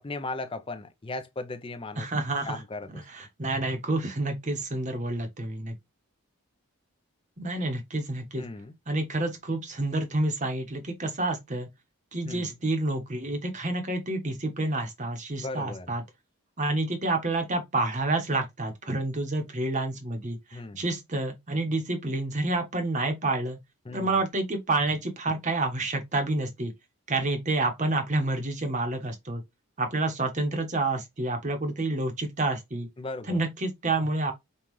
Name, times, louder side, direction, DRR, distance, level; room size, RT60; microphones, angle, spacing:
voice 1, 0.0-2.1 2.4-3.0 8.4-8.7 12.2-12.5 15.4-15.9 20.5-20.8 23.9-24.1 33.0-33.4, left 2 dB, 25° left, 0.4 m, -37 dB
voice 2, 2.0-2.6 2.9-5.7 7.4-8.5 8.9-11.7 12.1-16.0 16.6-23.6 23.9-26.7 27.1-29.4 29.8-32.9 33.3-34.3, right 2 dB, 35° right, 0.9 m, -29 dB
5.3 x 2.3 x 3.0 m
head